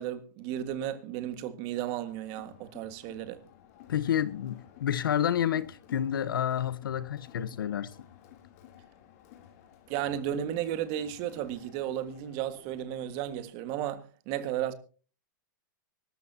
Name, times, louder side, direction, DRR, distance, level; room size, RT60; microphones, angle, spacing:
voice 1, 0.0-3.4 9.9-14.7, right 11 dB, 35° right, 1.8 m, -34 dB
Crowd, 2.1-13.6, left 10 dB, 45° left, 3.3 m, -55 dB
voice 2, 3.9-7.9, left 10 dB, 85° left, 1.2 m, -29 dB
24.0 x 13.5 x 2.8 m
hypercardioid pair, 150°, 11 cm